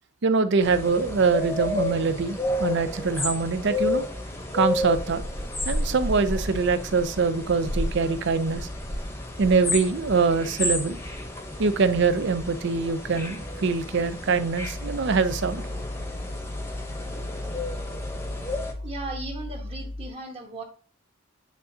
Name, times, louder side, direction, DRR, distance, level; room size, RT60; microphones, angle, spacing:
voice 1, 0.2-4.1 4.5-5.2 5.7-8.7 9.4-11.0 11.6-15.6, right 4 dB, 55° right, 12 dB, 0.5 m, -24 dB
sound 1, 0.6-18.7, left 2 dB, 15° left, 0.9 m, -32 dB
sound 2, 4.9-9.1 9.4-9.8, equal, 90° right, 2.2 m, -32 dB
sound 3, 14.6-20.1, left 1 dB, 75° left, 0.7 m, -36 dB
voice 2, 18.8-20.6, right 2 dB, 30° right, 1 dB, 1.3 m, -36 dB
9.2 x 3.8 x 2.7 m, 0.41 s
head